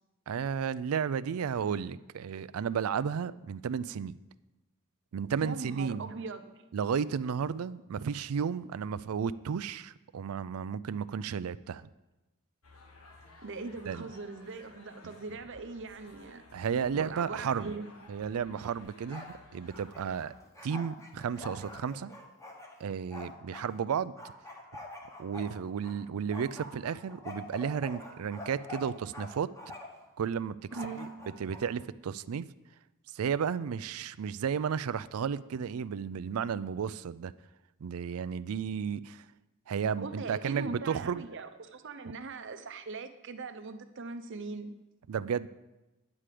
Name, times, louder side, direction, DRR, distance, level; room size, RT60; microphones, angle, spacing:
voice 1, 0.3-4.2 5.1-6.1 6.7-11.9 13.9-14.1 16.5-17.7 18.1-20.3 20.6-22.1 22.8-24.1 25.2-29.5 30.2-30.7 31.0-31.1 31.4-32.5 33.1-37.3 37.8-39.2 39.7-41.2 45.1-45.5, right 7 dB, 85° right, 17 dB, 0.4 m, -33 dB
voice 2, 5.4-6.5 13.4-16.4 16.9-17.9 30.7-31.0 40.0-44.8, right 3 dB, 60° right, 9 dB, 0.7 m, -40 dB
sound 1, 12.6-20.3, left 2 dB, 80° left, 1.4 m, -56 dB
Bark, 18.8-19.4 19.7-23.7 24.2-26.0 26.3-29.3 29.6-30.0 30.7-31.6, left 2 dB, 15° left, 1.3 m, -45 dB
9.9 x 4.9 x 7.6 m, 1.0 s
head